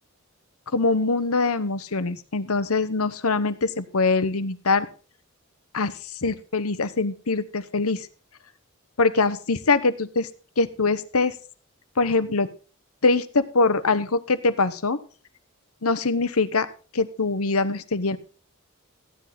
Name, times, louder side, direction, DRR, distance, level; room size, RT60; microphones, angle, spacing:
voice 1, 0.7-4.9 5.7-8.1 9.0-10.3 10.6-11.3 12.0-12.5 13.0-15.0 15.8-16.7 16.9-18.2, left 3 dB, 85° left, 13 dB, 1.0 m, -23 dB
14.5 x 10.0 x 4.2 m, 0.37 s
head